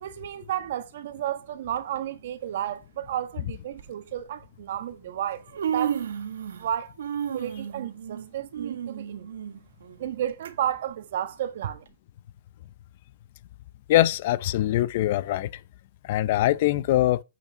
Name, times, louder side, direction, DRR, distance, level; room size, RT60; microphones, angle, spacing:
voice 1, 0.0-6.0 6.6-6.9 7.3-9.3 10.0-11.8, right 11 dB, 45° right, 1.2 m, -32 dB
Human voice, 1.8-2.0 3.0-3.1 3.7-3.9 4.9-5.0 5.3-6.7 7.0-10.5 10.9-11.0 11.9-12.0, right 8 dB, 75° right, 1.7 m, -32 dB
voice 2, 13.9-15.5 16.0-17.2, left 15 dB, 35° left, 0.5 m, -22 dB
9.2 x 5.6 x 5.5 m
hypercardioid pair, 180°, 0 cm